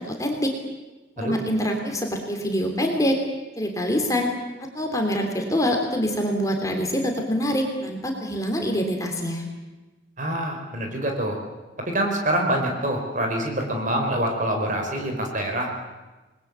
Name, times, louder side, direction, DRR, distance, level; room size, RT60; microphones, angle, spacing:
voice 1, 0.1-0.5 1.2-3.2 3.6-4.3 4.7-9.4, equal, 15° left, 2 dB, 3.2 m, -25 dB
voice 2, 10.2-11.4 11.8-15.7, right 1 dB, 40° right, 2 dB, 4.9 m, -25 dB
28.0 x 21.0 x 8.3 m, 1.2 s
head